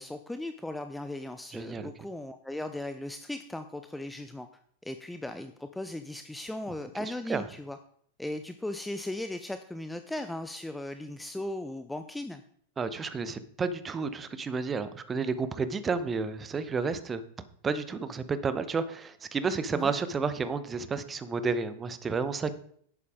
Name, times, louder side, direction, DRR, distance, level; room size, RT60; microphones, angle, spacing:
voice 1, 0.0-4.5 4.8-7.8 8.2-12.4 19.7-19.9, left 1 dB, 5° left, 8 dB, 0.5 m, -37 dB
voice 2, 1.5-1.9 7.0-7.4 12.8-17.2 17.6-22.5, right 4 dB, 20° right, 12 dB, 0.9 m, -31 dB
11.0 x 8.3 x 3.6 m, 0.63 s
figure-of-eight pair, 90°, 0 cm